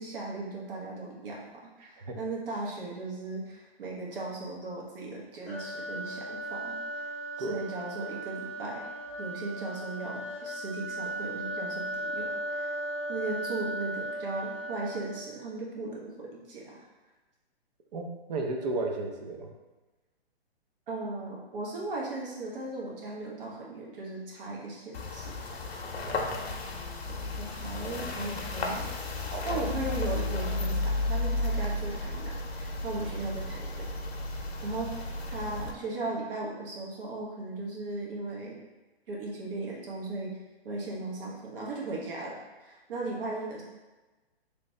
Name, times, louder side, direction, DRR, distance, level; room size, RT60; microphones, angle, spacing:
voice 1, 0.0-1.4 1.8-7.1 7.4-8.9 9.2-12.7 13.1-16.9 20.9-25.6 27.1-28.9 29.4-33.9 34.3-38.6 39.1-40.4 40.6-43.6, right 2 dB, 60° right, -3 dB, 1.0 m, -37 dB
sound 1, 5.5-15.4, right 1 dB, ahead, 0.8 m, -37 dB
voice 2, 17.9-19.5 25.9-26.4 29.3-29.6, right 3 dB, 40° right, 2 dB, 0.5 m, -34 dB
sound 2, 24.9-35.7, left 2 dB, 75° left, 0.7 m, -33 dB
3.1 x 2.7 x 3.1 m, 1.2 s
hypercardioid pair, 145°, 32 cm